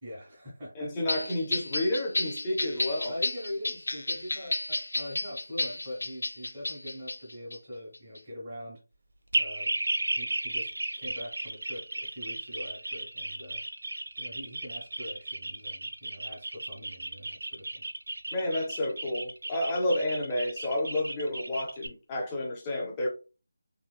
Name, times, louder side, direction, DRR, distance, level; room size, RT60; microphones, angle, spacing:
voice 1, 0.0-0.9 3.1-8.8 9.4-9.8 10.1-10.7 11.0-13.6 14.2-17.8, left 1 dB, 15° right, 0.9 m, -42 dB
voice 2, 0.8-3.1 18.3-23.1, left 1 dB, 10° left, 0.4 m, -30 dB
sound 1, 1.1-7.6 7.9-8.2, left 2 dB, 75° left, 0.6 m, -32 dB
sound 2, 9.3-21.9, right 2 dB, 70° right, 0.5 m, -34 dB
2.9 x 2.8 x 2.2 m
figure-of-eight pair, 175°, 0 cm